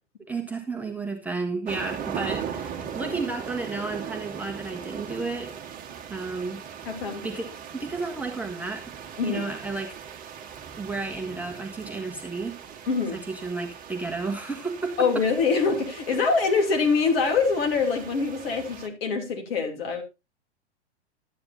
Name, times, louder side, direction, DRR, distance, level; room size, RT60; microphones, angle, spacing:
voice 1, 0.3-5.5 6.1-6.6 7.2-8.9 9.2-9.9 10.8-12.6 13.1-15.1 16.1-16.2, right 3 dB, 5° right, 1 dB, 1.4 m, -32 dB
sound 1, 1.7-18.9, right 8 dB, 25° right, 1.4 m, -39 dB
voice 2, 6.8-7.2 9.2-9.5 12.9-13.2 15.0-20.0, left 4 dB, 55° left, 4 dB, 2.9 m, -24 dB
12.5 x 9.5 x 2.7 m, 0.25 s
figure-of-eight pair, 105°, 34 cm